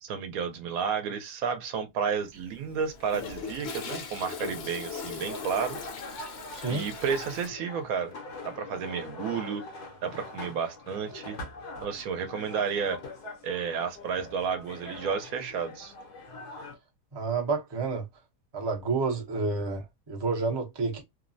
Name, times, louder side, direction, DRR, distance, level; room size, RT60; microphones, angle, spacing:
voice 1, 0.0-5.8 6.7-8.1 8.4-9.7 10.0-11.4 11.8-13.0 13.4-15.9, right 6 dB, 75° right, 1.0 m, -31 dB
Toilet flush, 2.2-7.5, left 5 dB, 60° left, 0.7 m, -39 dB
sound 1, 5.0-16.8, left 2 dB, 90° left, 1.4 m, -43 dB
voice 2, 6.5-6.9 17.1-18.1 18.5-21.0, right 4 dB, 35° right, 0.4 m, -29 dB
3.1 x 2.0 x 2.5 m
omnidirectional pair, 1.6 m